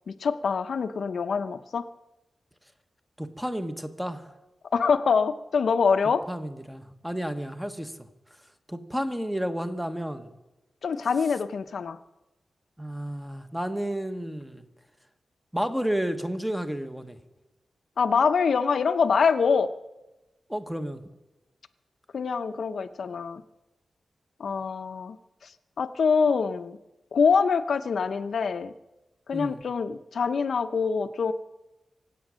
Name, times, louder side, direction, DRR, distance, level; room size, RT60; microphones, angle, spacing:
voice 1, 0.1-1.8 4.7-6.2 10.8-12.0 18.0-19.7 22.1-23.4 24.4-25.2 25.8-26.8 27.1-28.7 29.3-31.3, left 5 dB, 65° left, 11 dB, 0.7 m, -25 dB
voice 2, 3.2-4.3 6.3-8.1 8.7-10.3 12.8-14.7 15.5-17.2 20.5-21.0 29.3-29.6, equal, 5° right, 8 dB, 1.1 m, -31 dB
24.5 x 8.4 x 6.3 m, 1.0 s
wide cardioid pair, 150°, 0 cm